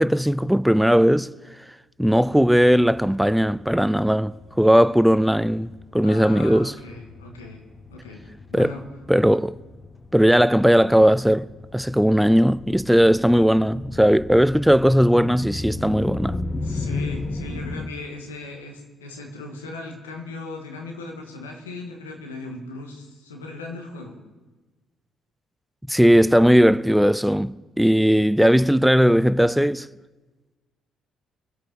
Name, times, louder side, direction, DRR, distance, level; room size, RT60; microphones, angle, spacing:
voice 1, 0.0-1.3 2.0-6.7 8.5-8.7 9.1-9.5 10.1-16.4 25.9-29.9, equal, 5° right, 0.4 m, -18 dB
sound 1, 2.2-17.9, left 2 dB, 30° left, 1.2 m, -35 dB
voice 2, 6.0-7.6 7.9-8.8 16.6-24.2, left 2 dB, 85° left, 1.8 m, -37 dB
25.0 x 8.6 x 4.3 m
hypercardioid pair, 45°, 0 cm